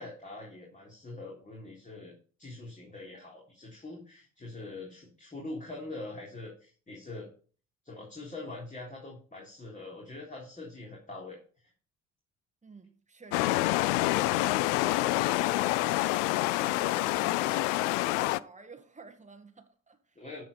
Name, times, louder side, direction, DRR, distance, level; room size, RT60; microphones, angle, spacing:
voice 1, 0.0-2.1 2.4-7.3 7.8-11.4 20.2-20.4, left 2 dB, 20° left, 3.6 m, -43 dB
voice 2, 12.6-16.1 16.6-20.2, right 4 dB, 20° right, 2.0 m, -50 dB
sound 1, 13.3-18.4, left 18 dB, 70° left, 0.5 m, -27 dB
13.0 x 4.8 x 5.7 m
figure-of-eight pair, 50°, 38 cm